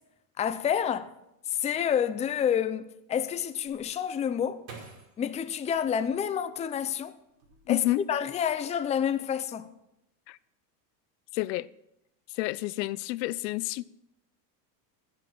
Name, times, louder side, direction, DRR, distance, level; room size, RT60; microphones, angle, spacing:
voice 1, 0.4-1.1 1.5-4.6 5.2-7.1 7.7-7.8 8.1-9.7, left 8 dB, 15° left, 0.5 m, -28 dB
sound 1, 3.7-6.7 7.3-8.0 8.3-8.8, right 4 dB, 90° right, 5.3 m, -50 dB
voice 2, 7.7-8.0 10.3-10.4 11.3-11.7 12.3-13.8, left 18 dB, 80° left, 0.7 m, -29 dB
14.0 x 10.5 x 6.1 m
supercardioid pair, 125°, 50 cm